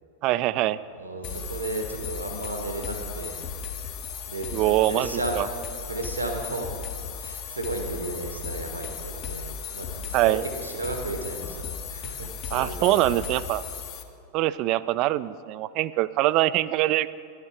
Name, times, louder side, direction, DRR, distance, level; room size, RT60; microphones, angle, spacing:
voice 1, 0.2-0.8 4.5-5.5 10.1-10.4 12.5-13.6 14.3-17.1, right 15 dB, 40° right, 17 dB, 0.3 m, -23 dB
voice 2, 0.9-3.3 4.3-5.5 5.9-6.7 7.1-13.3, right 2 dB, 80° right, 4 dB, 1.3 m, -34 dB
sound 1, 1.2-14.0, left 6 dB, 40° left, 0.9 m, -36 dB
11.5 x 10.5 x 4.9 m, 2.3 s
figure-of-eight pair, 90°, 0 cm